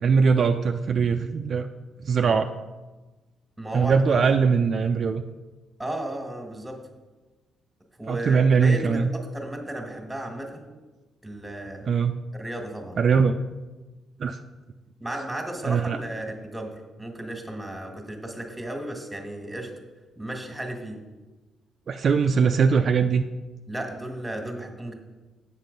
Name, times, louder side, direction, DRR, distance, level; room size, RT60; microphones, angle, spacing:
voice 1, 0.0-1.7 2.0-2.5 3.7-5.2 8.1-9.1 11.9-12.2 13.0-13.4 14.2-14.4 15.6-16.0 21.9-23.2, right 5 dB, 50° right, 6 dB, 0.4 m, -21 dB
voice 2, 3.6-3.9 4.3-4.4 5.8-6.8 8.0-10.7 11.2-11.9 12.3-13.0 15.0-19.7 20.2-21.0 23.7-24.9, right 1 dB, 5° right, 3 dB, 1.6 m, -34 dB
7.4 x 6.7 x 5.3 m, 1.2 s
cardioid pair, 90°, 0 cm